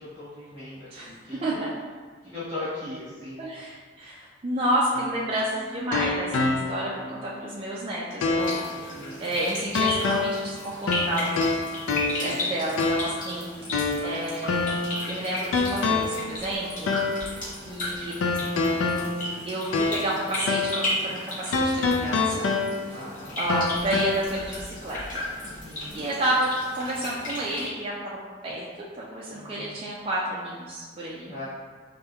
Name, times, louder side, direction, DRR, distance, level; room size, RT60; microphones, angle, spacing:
voice 1, 0.0-1.6 2.2-3.4 8.7-9.3 12.1-12.5 22.9-23.4 25.4-26.0 29.3-29.8 31.3-31.4, left 2 dB, 15° left, -15 dB, 1.2 m, -39 dB
voice 2, 0.9-1.7 3.4-8.9 9.2-11.5 12.2-13.5 14.0-14.7 15.1-17.0 17.7-18.1 19.5-21.6 22.0-22.4 22.9-23.0 23.4-25.2 25.9-28.2 28.4-28.7 28.9-31.3, right 1 dB, 30° right, -6 dB, 0.3 m, -30 dB
sound 1, 4.9-7.0 7.4-7.5 8.2-8.7 9.7-10.5 10.9-12.4 12.8-13.2 13.7-15.0 15.5-16.3 16.9-17.3 18.2-20.2 20.5-20.9 21.5-23.0 23.5-24.1, left 3 dB, 85° left, 0.3 m, -26 dB
sound 2, 8.4-27.7, left 1 dB, 45° left, 0.9 m, -35 dB
5.1 x 2.2 x 2.2 m, 1.5 s
head